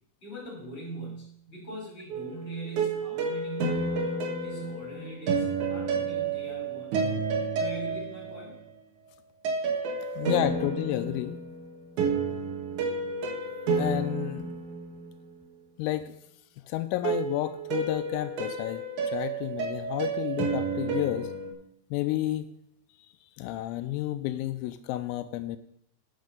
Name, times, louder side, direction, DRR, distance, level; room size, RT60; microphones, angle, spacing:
voice 1, 0.2-7.0 7.5-8.6 9.5-9.6, right 2 dB, 15° left, -2 dB, 3.5 m, -41 dB
sound 1, 2.1-8.7 9.4-15.4 17.0-21.5, right 4 dB, 90° right, 1.7 m, -30 dB
voice 2, 10.2-11.4 13.8-14.5 15.8-16.2 16.7-21.3 21.9-22.5 23.4-25.6, left 14 dB, 85° left, 10 dB, 3.2 m, -31 dB
8.5 x 7.2 x 6.4 m, 0.72 s
omnidirectional pair, 6.0 m